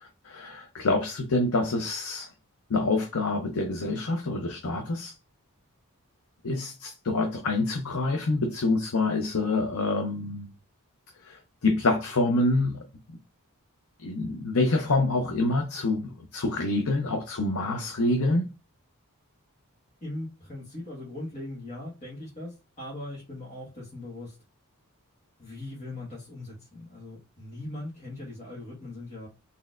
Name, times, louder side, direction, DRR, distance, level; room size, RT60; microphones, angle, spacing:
voice 1, 0.0-2.3 2.7-5.1 6.4-10.5 11.2-12.8 14.0-18.4, left 2 dB, 70° left, 0.7 m, -26 dB
voice 2, 17.6-17.9 20.0-24.4 25.4-29.3, left 1 dB, 35° left, 1.5 m, -40 dB
4.2 x 3.3 x 2.5 m
head